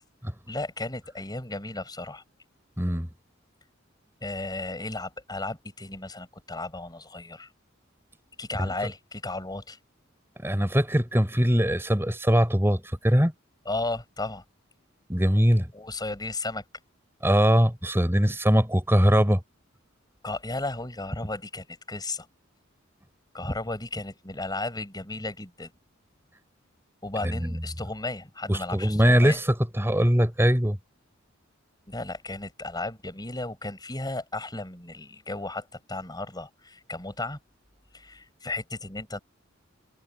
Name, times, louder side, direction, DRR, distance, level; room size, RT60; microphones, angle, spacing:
voice 1, 0.5-2.2 4.2-7.5 8.4-9.8 13.7-14.4 15.7-16.6 20.2-22.3 23.3-25.7 27.0-29.4 31.9-37.4 37.9-39.2, left 2 dB, 20° left, 5.6 m, -34 dB
voice 2, 2.8-3.1 8.6-8.7 10.4-13.3 15.1-15.7 17.2-19.4 27.2-27.6 28.5-30.8, equal, 10° right, 4.4 m, -22 dB
head